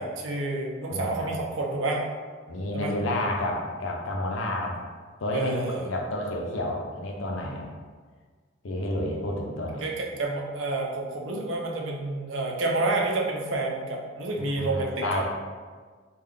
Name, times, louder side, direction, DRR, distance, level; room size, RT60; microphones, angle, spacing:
voice 1, 0.0-2.1 2.7-2.9 5.3-5.9 9.8-15.2, right 2 dB, 80° right, 0 dB, 0.6 m, -29 dB
voice 2, 0.9-1.3 2.5-4.8 5.2-7.7 8.6-9.8 14.5-15.2, left 1 dB, 90° left, 0 dB, 0.6 m, -30 dB
3.7 x 2.4 x 3.4 m, 1.5 s
head